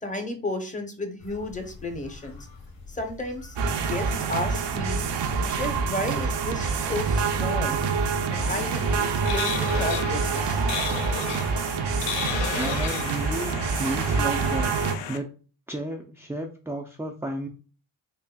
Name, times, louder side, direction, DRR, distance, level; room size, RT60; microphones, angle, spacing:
voice 1, 0.0-2.4 2.9-5.0 5.4-7.8 8.3-10.6, left 2 dB, 20° left, 6 dB, 0.9 m, -33 dB
sound 1, 1.2-7.1, left 2 dB, 55° left, 1.5 m, -45 dB
sound 2, 3.6-14.9, right 5 dB, 75° right, 0.6 m, -26 dB
sound 3, 8.5-15.2, left 9 dB, 80° left, 0.5 m, -34 dB
voice 2, 12.5-14.8 15.1-15.3 15.7-17.5, right 1 dB, 5° right, 2 dB, 0.4 m, -32 dB
4.0 x 3.1 x 2.2 m, 0.37 s
cardioid pair, 65°, 42 cm